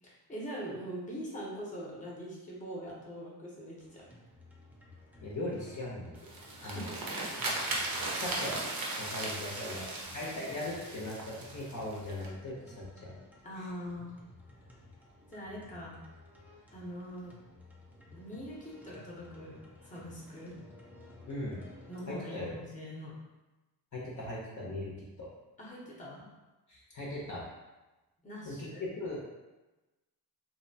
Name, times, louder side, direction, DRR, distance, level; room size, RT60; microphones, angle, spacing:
voice 1, 0.0-4.2 6.6-7.6 9.6-10.1 10.3-10.5 13.4-14.2 15.3-16.0 16.7-17.4 18.1-19.6 19.8-20.5 21.9-23.2 25.6-26.3 28.2-28.8, equal, 20° left, -4 dB, 0.7 m, -43 dB
sound 1, 3.8-22.0, left 2 dB, 5° right, 0.4 m, -55 dB
voice 2, 5.2-6.1 6.6-6.9 8.1-8.6 8.9-9.8 10.1-13.1 21.3-21.6 22.1-22.6 23.9-25.3 26.7-27.4 28.4-29.2, left 1 dB, 50° left, -5 dB, 0.7 m, -39 dB
sound 2, 6.2-12.3, right 2 dB, 60° right, 0.7 m, -37 dB
2.7 x 2.1 x 2.7 m, 1.1 s
cardioid pair, 90°, 39 cm